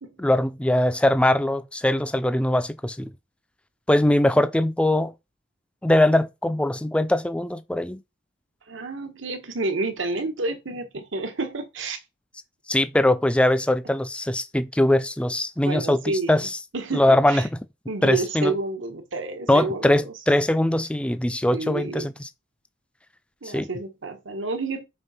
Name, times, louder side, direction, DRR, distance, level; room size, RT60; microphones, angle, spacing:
voice 1, 0.2-3.1 3.9-5.1 5.8-8.0 12.7-16.5 16.9-17.4 18.0-18.5 19.5-22.1 23.5-23.7, left 1 dB, 5° left, 0.4 m, -21 dB
voice 2, 8.7-12.0 15.6-17.5 17.9-20.1 21.5-22.1 23.4-24.8, right 3 dB, 80° right, 1.2 m, -29 dB
5.3 x 3.7 x 5.5 m
head